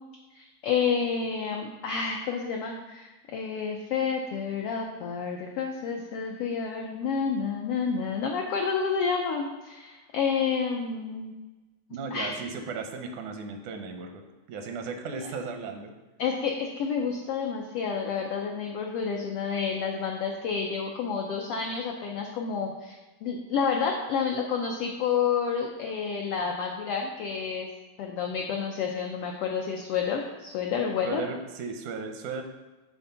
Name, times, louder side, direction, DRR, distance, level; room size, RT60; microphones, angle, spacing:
voice 1, 0.3-11.3 12.1-12.4 16.2-27.7 28.0-31.2, left 6 dB, 85° left, 1 dB, 1.3 m, -29 dB
voice 2, 11.9-14.2 14.5-15.9 31.0-32.4, right 4 dB, 80° right, 5 dB, 2.2 m, -36 dB
8.4 x 3.5 x 5.5 m, 1.1 s
omnidirectional pair, 3.4 m